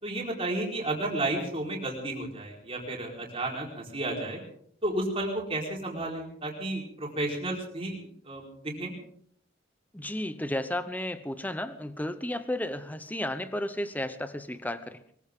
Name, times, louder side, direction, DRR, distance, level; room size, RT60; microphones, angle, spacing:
voice 1, 0.0-4.4 4.8-8.9, right 1 dB, 30° right, -2 dB, 4.5 m, -32 dB
voice 2, 9.9-15.0, left 1 dB, 10° left, 12 dB, 0.9 m, -33 dB
22.5 x 15.5 x 3.8 m, 0.65 s
head